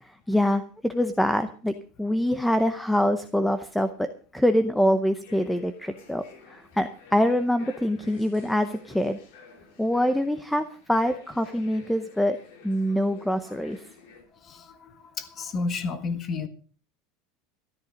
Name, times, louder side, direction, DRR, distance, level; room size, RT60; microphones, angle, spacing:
voice 1, 0.0-1.7 2.0-9.2 9.8-12.4 12.6-13.8, equal, ahead, 10 dB, 0.7 m, -25 dB
sound 1, 5.2-14.2, left 5 dB, 70° left, 4.9 m, -51 dB
voice 2, 14.4-16.5, left 4 dB, 25° left, 11 dB, 1.5 m, -31 dB
14.0 x 12.5 x 5.2 m, 0.40 s
supercardioid pair, 175°, 0 cm